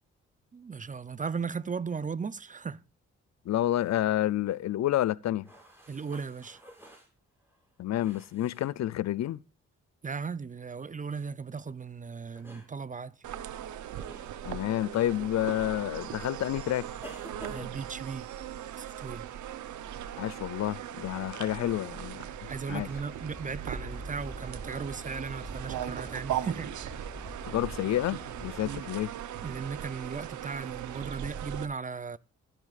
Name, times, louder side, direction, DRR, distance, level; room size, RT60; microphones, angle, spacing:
voice 1, 0.5-2.8 5.9-6.6 10.0-13.2 17.5-18.3 18.8-19.3 22.5-26.7 29.4-32.2, right 5 dB, 25° right, 0.5 m, -36 dB
voice 2, 3.5-5.5 7.8-9.4 14.5-16.9 20.2-22.3 22.7-22.9 27.5-29.1, left 13 dB, 65° left, 0.5 m, -29 dB
sound 1, 5.4-8.7 11.1-11.3 12.3-12.7 13.9-14.3 15.2-15.4 17.0-18.2, equal, 10° right, 7.0 m, -50 dB
sound 2, 13.2-31.6, right 10 dB, 80° right, 0.8 m, -39 dB
sound 3, 22.7-28.8, left 1 dB, 10° left, 1.0 m, -46 dB
14.5 x 12.0 x 2.5 m
cardioid pair, 65°, 29 cm